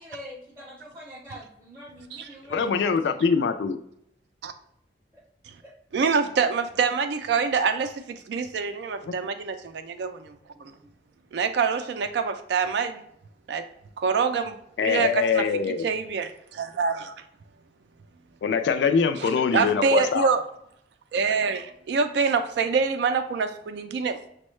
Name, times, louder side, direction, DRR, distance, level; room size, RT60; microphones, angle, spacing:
voice 1, 0.0-3.3 5.1-5.2 5.6-5.7 6.2-6.4 10.5-10.6, equal, 15° right, -5 dB, 0.5 m, -44 dB
voice 2, 2.5-3.8 9.0-9.1 14.8-15.9 18.4-20.3, left 6 dB, 80° left, 8 dB, 0.3 m, -23 dB
voice 3, 5.9-10.4 10.6-10.7 11.3-13.0 13.5-13.6 14.0-15.4 15.8-17.1 19.2-20.4 21.1-24.3, right 5 dB, 75° right, 8 dB, 0.3 m, -26 dB
6.1 x 2.1 x 3.1 m, 0.74 s
head